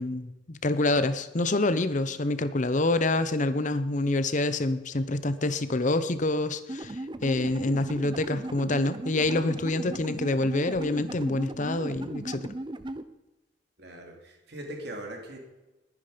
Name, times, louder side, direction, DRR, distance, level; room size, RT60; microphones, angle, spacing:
voice 1, 0.0-12.5, left 2 dB, 45° left, 13 dB, 0.8 m, -27 dB
sound 1, 6.7-13.0, right 1 dB, 25° right, 0.7 m, -37 dB
voice 2, 13.8-15.4, right 1 dB, 60° right, 2 dB, 3.2 m, -40 dB
20.5 x 9.9 x 5.2 m, 1.0 s
head